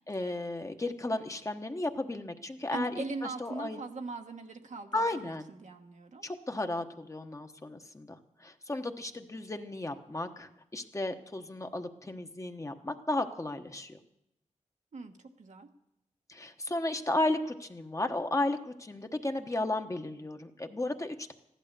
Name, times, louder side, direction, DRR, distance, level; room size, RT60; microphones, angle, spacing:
voice 1, 0.1-3.8 4.9-5.5 6.2-14.0 16.3-21.3, left 2 dB, 25° left, 6 dB, 1.1 m, -34 dB
voice 2, 2.7-6.3 14.9-15.7, right 3 dB, 75° right, 4 dB, 1.3 m, -41 dB
15.0 x 11.0 x 6.7 m, 0.84 s
wide cardioid pair, 75°, 12 cm